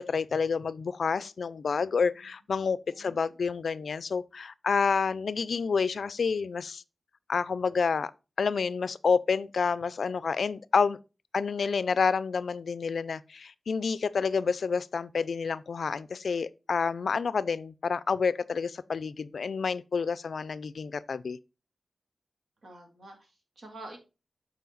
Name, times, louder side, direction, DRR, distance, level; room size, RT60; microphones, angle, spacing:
voice 1, 0.0-6.8 7.3-8.1 8.4-11.0 11.3-21.4, left 5 dB, 90° left, 0.3 m, -29 dB
voice 2, 22.6-24.0, right 2 dB, 80° right, 2.3 m, -47 dB
8.3 x 4.3 x 3.9 m
wide cardioid pair, 65°, 0 cm